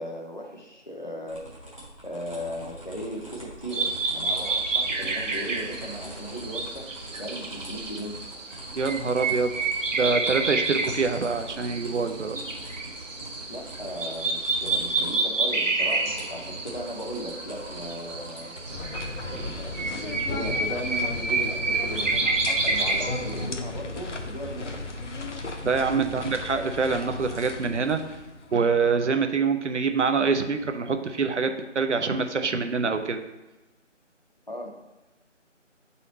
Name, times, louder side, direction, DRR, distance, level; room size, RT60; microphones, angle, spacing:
voice 1, 0.0-1.4 2.0-8.2 12.2-12.6 13.5-18.6 19.4-24.8 26.0-26.3 34.5-34.7, equal, 40° left, 1 dB, 0.6 m, -37 dB
sound 1, 1.3-18.8, right 1 dB, 25° right, 0.9 m, -43 dB
sound 2, 3.7-23.5, right 3 dB, 85° right, 1.0 m, -29 dB
voice 2, 8.8-9.5 9.9-12.4 19.3-19.5 25.6-28.0 28.5-33.2, right 5 dB, 70° right, 7 dB, 0.6 m, -25 dB
sound 3, 18.7-28.6, left 2 dB, 70° left, 0.8 m, -35 dB
8.1 x 4.1 x 2.8 m, 1.1 s
figure-of-eight pair, 175°, 37 cm